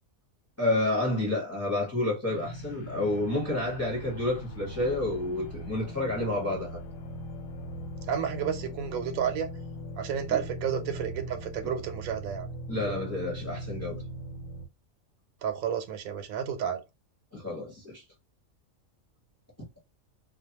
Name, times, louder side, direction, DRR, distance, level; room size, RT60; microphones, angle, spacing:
voice 1, 0.6-6.8 10.3-10.4 12.7-14.0 17.3-18.0, left 2 dB, 15° left, 0.8 m, -29 dB
sound 1, 2.3-14.7, equal, 70° left, 0.9 m, -40 dB
voice 2, 8.1-9.5 10.0-12.5 15.4-16.8, right 8 dB, 85° right, 1.0 m, -31 dB
2.5 x 2.2 x 2.8 m
omnidirectional pair, 1.4 m